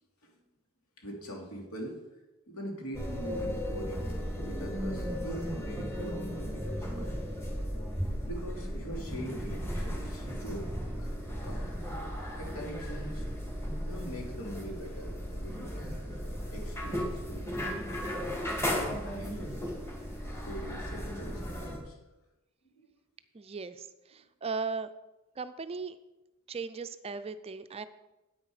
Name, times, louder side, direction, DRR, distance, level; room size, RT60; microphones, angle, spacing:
voice 1, 1.0-2.0 2.5-4.1 4.5-7.1 8.2-10.7 11.0-11.2 11.4-11.8 12.4-13.3 13.9-15.9 16.5-17.5 18.4-19.7 20.4-21.9 22.7-22.8, right 1 dB, 80° left, 0 dB, 2.8 m, -42 dB
sound 1, 2.9-21.8, equal, 15° left, 2.2 m, -36 dB
voice 2, 23.3-23.9 24.4-24.9 25.4-26.0 26.5-27.9, right 4 dB, 25° right, 12 dB, 0.4 m, -36 dB
9.8 x 8.6 x 4.8 m, 1.0 s
head